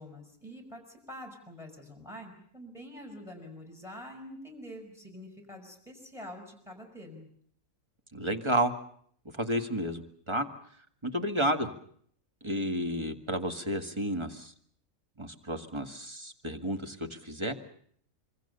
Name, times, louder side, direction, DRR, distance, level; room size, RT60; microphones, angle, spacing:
voice 1, 0.0-7.3, equal, ahead, 5 dB, 5.8 m, -46 dB
voice 2, 8.1-8.7 9.3-10.5 11.0-11.7 12.4-14.5 15.2-17.6, right 1 dB, 20° right, 6 dB, 1.9 m, -31 dB
26.0 x 23.5 x 6.8 m, 0.62 s
omnidirectional pair, 1.4 m